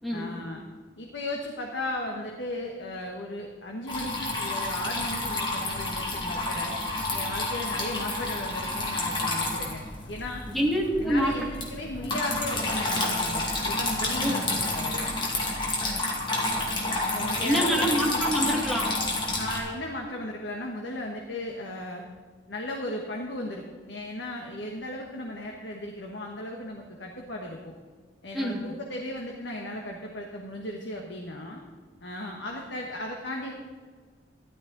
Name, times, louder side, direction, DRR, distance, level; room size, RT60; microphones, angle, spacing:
voice 1, 0.1-0.6 1.0-6.8 7.1-10.4 11.0-15.0 17.1-18.2 19.4-22.1 22.5-27.7 28.2-31.6 32.0-33.5, left 1 dB, 85° left, 0 dB, 1.4 m, -36 dB
Water tap faucet / Trickle dribble, 3.9-19.6, left 2 dB, 25° left, 2.4 m, -30 dB
voice 2, 10.5-11.3 12.1-12.2 14.2-14.4 17.4-18.9 28.3-28.6, equal, ahead, -2 dB, 2.2 m, -26 dB
13.5 x 12.0 x 4.0 m, 1.5 s
head